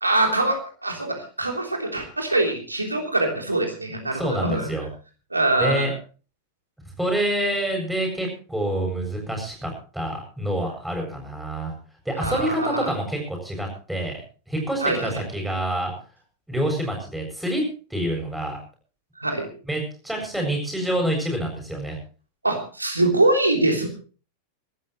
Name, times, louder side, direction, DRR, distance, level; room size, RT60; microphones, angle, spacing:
voice 1, 0.0-4.7 5.3-5.9 12.2-12.9 14.8-15.2 19.2-19.5 22.4-23.9, right 2 dB, 80° right, 3 dB, 3.3 m, -23 dB
voice 2, 4.1-4.9 5.6-5.9 7.0-11.7 12.0-14.2 14.5-15.9 16.5-17.6 17.9-18.6 19.7-22.0, right 1 dB, 5° right, 1 dB, 7.8 m, -27 dB
25.0 x 13.0 x 3.1 m, 0.38 s
figure-of-eight pair, 90°, 0 cm